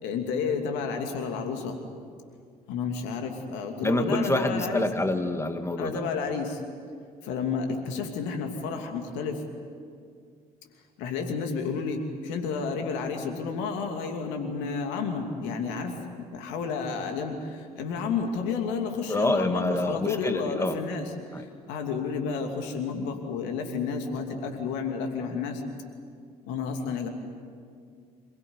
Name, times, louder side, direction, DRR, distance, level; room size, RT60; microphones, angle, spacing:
voice 1, 0.0-1.8 2.7-4.9 5.8-6.6 7.2-9.4 11.0-25.6 26.4-27.1, left 5 dB, 75° left, 4 dB, 2.7 m, -31 dB
voice 2, 3.8-6.0 19.1-20.8 21.3-21.4, left 1 dB, 15° left, 7 dB, 2.0 m, -27 dB
27.5 x 16.5 x 9.7 m, 2.2 s
hypercardioid pair, 55°, 19 cm